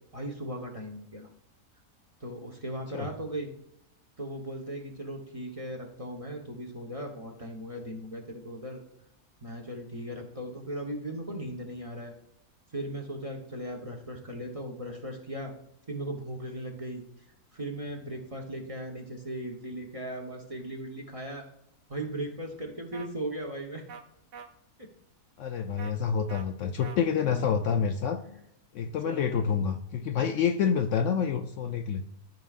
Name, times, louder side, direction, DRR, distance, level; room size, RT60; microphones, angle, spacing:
voice 1, 0.1-1.3 2.2-3.5 4.2-8.8 9.4-12.1 12.7-15.5 15.9-17.0 17.5-21.5 21.9-23.8 24.8-24.9 28.2-28.4 29.0-29.3, right 1 dB, 25° right, 2 dB, 1.0 m, -37 dB
sound 1, 22.9-23.1 23.9-24.0 24.3-24.5 25.8-25.9 26.3-26.5 26.8-27.0, right 6 dB, 60° right, 1.1 m, -43 dB
voice 2, 25.4-28.2 28.7-32.0, left 7 dB, 65° left, 6 dB, 0.8 m, -28 dB
13.5 x 4.9 x 2.4 m, 0.78 s
omnidirectional pair, 1.6 m